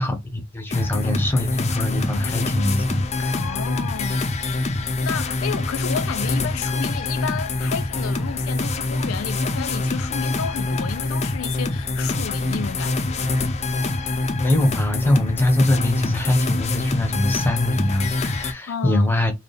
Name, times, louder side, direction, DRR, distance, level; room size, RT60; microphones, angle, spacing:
voice 1, 0.0-3.3 4.7-4.8 14.4-19.3, left 1 dB, 10° left, 0.8 m, -22 dB
sound 1, 0.7-18.5, left 2 dB, 35° left, 0.5 m, -25 dB
voice 2, 3.3-4.3 5.0-13.3 18.7-19.1, left 7 dB, 90° left, 0.4 m, -31 dB
3.4 x 2.3 x 4.1 m
head